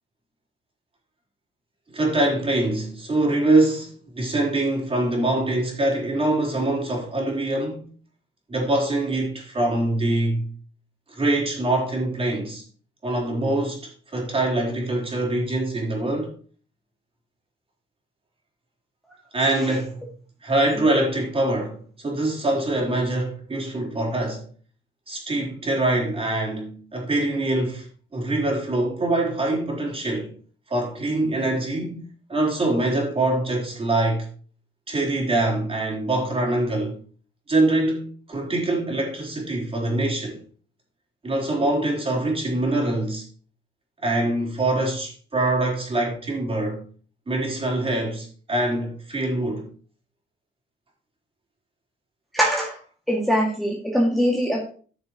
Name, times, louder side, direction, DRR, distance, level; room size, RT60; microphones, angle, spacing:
voice 1, 1.9-7.9 8.5-10.5 11.1-12.6 13.0-16.3 19.3-20.0 20.4-24.4 25.1-30.3 30.7-32.0 32.3-34.3 34.9-37.0 37.5-40.4 41.2-43.2 44.0-46.8 47.3-49.7, right 2 dB, 30° right, 4.0 m, -24 dB
voice 2, 52.3-52.8 53.1-54.7, equal, ahead, 2.1 m, -22 dB
13.0 x 6.5 x 3.0 m
cardioid pair, 90°, 20 cm